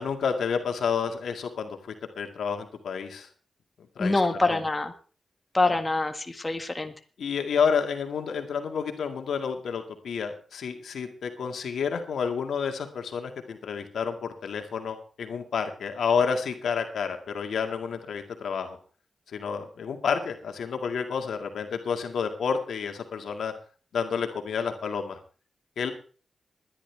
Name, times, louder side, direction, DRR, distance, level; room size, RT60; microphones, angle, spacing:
voice 1, 0.0-3.3 4.0-4.6 5.6-5.7 7.2-18.8 19.3-23.5 23.9-25.2 25.8-25.9, left 6 dB, 85° left, 5 dB, 2.0 m, -30 dB
voice 2, 4.0-4.9 5.5-6.9, left 2 dB, 25° left, 6 dB, 1.8 m, -25 dB
21.0 x 11.0 x 3.4 m, 0.39 s
cardioid pair, 70°, 0 cm